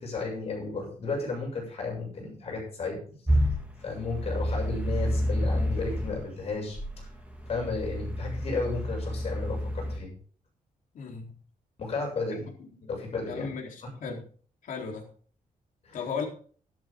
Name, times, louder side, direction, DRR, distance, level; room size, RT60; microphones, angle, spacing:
voice 1, 0.0-3.0 3.8-7.1 7.5-10.1 11.8-12.4 12.9-13.5 15.9-16.0, left 3 dB, 45° left, 0 dB, 7.5 m, -33 dB
sound 1, 3.3-6.2 6.8-10.0, equal, 10° right, 2.7 m, -29 dB
voice 2, 10.9-11.3 12.3-12.4 12.8-12.9 13.3-14.2 14.6-15.0 15.9-16.2, left 6 dB, 70° left, 1 dB, 4.0 m, -36 dB
13.5 x 12.5 x 3.8 m, 0.43 s
wide cardioid pair, 175°, 14 cm